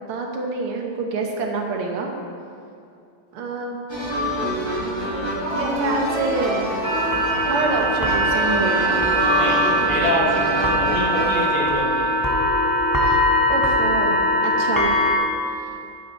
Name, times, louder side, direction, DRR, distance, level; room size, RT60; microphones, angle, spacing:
voice 1, 0.1-2.1 3.3-3.8 4.4-4.5 5.5-7.0 7.5-8.9 13.0-14.9 15.2-15.8, right 3 dB, 85° right, 1 dB, 2.1 m, -27 dB
sound 1, 3.9-11.5, equal, 15° right, 1.7 m, -26 dB
sound 2, 6.8-15.2, equal, 25° left, 0.4 m, -21 dB
voice 2, 9.3-12.2, left 2 dB, 60° left, -3 dB, 2.3 m, -26 dB
10.0 x 8.6 x 4.4 m, 2.6 s
omnidirectional pair, 2.4 m